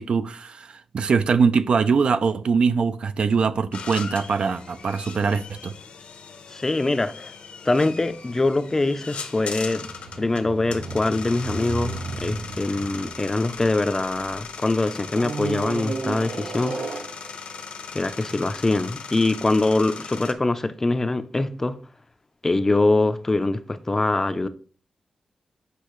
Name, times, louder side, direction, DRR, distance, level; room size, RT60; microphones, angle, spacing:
voice 1, 0.0-5.7, right 5 dB, 55° right, 0.5 m, -22 dB
sound 1, 3.7-20.3, left 5 dB, 85° left, 0.9 m, -39 dB
voice 2, 6.5-7.3 7.7-9.9 10.2-16.9 17.9-21.8 22.4-24.5, left 2 dB, 20° left, 0.4 m, -23 dB
sound 2, 9.6-14.3 15.1-17.6 18.3-18.4, right 4 dB, 80° right, 0.9 m, -34 dB
8.3 x 5.4 x 3.1 m
wide cardioid pair, 180°, 2 cm